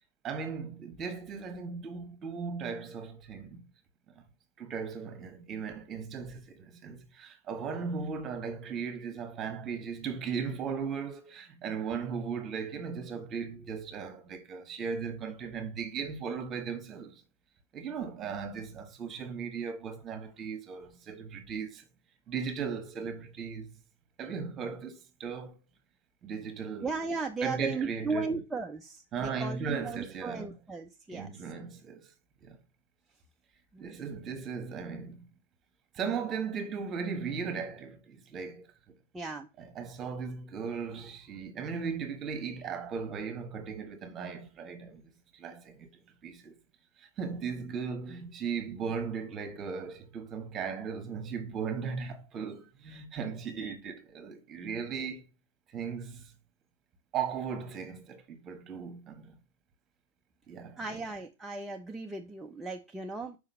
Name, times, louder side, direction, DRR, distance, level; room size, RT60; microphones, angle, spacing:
voice 1, 0.2-3.7 4.1-4.2 4.6-17.2 17.7-21.8 22.3-23.8 24.2-25.6 26.2-26.9 27.4-28.4 29.1-30.6 31.1-32.1 32.4-32.6 33.8-35.3 35.9-38.7 39.6-45.9 46.2-46.5 47.0-55.3 55.7-56.3 57.1-59.4 60.5-61.0, right 6 dB, 30° right, 1.4 m, -37 dB
voice 2, 26.8-31.3 33.7-34.0 39.1-39.5 60.8-63.4, right 4 dB, 10° right, 0.7 m, -36 dB
5.1 x 3.7 x 5.5 m
hypercardioid pair, 105°, 0 cm